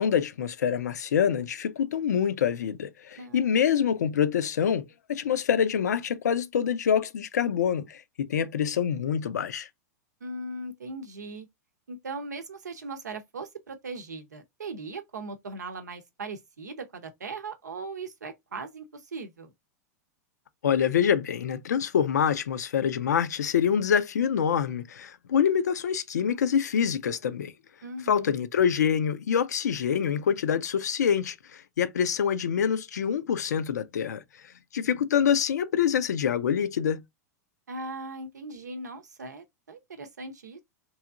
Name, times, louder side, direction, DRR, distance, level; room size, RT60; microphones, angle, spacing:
voice 1, 0.0-9.7 20.6-27.5 28.1-34.2 34.7-37.0, left 8 dB, 80° left, 0.4 m, -26 dB
voice 2, 3.2-3.7 10.2-11.5 11.9-19.5 27.8-28.4 37.7-40.6, right 3 dB, 85° right, 0.7 m, -39 dB
3.0 x 2.7 x 2.4 m
hypercardioid pair, 100°, 9 cm